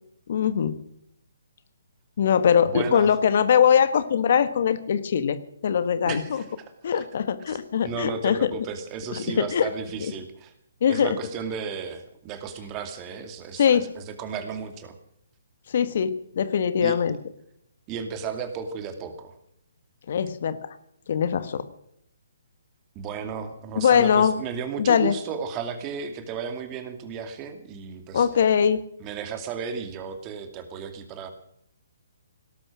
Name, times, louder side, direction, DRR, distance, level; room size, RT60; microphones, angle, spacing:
voice 1, 0.3-0.8 2.2-5.4 5.6-6.4 6.8-8.5 9.4-9.7 10.0-10.1 10.8-11.1 13.6-13.9 15.7-17.2 20.1-20.7 21.1-21.6 23.8-24.3 24.8-25.1 28.1-28.8, left 8 dB, 55° left, 13 dB, 1.4 m, -21 dB
voice 2, 2.7-3.2 6.1-7.1 7.5-10.5 10.9-15.0 16.8-17.0 17.9-19.4 22.9-28.3 29.0-31.3, right 6 dB, 25° right, 8 dB, 2.4 m, -34 dB
18.5 x 12.0 x 6.2 m, 0.74 s
figure-of-eight pair, 135°, 0 cm